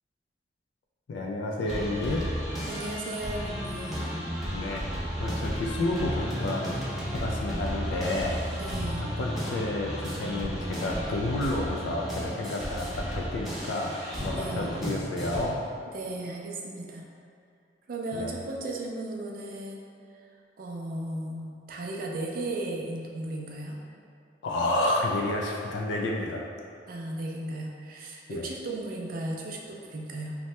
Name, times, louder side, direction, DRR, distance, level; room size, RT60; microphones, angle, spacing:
voice 1, 1.1-2.3 4.5-6.9 7.1-8.4 9.0-15.6 18.1-18.4 24.4-26.5 28.3-28.5, left 2 dB, 85° left, 0 dB, 0.3 m, -30 dB
sound 1, 1.6-15.4, equal, ahead, 0.6 m, -33 dB
voice 2, 2.7-4.1 8.6-9.1 14.3-14.7 15.9-17.1 17.9-19.8 20.2-20.3 20.6-23.8 26.9-30.4, right 2 dB, 55° right, 0 dB, 0.4 m, -35 dB
2.8 x 2.1 x 3.1 m, 2.4 s
head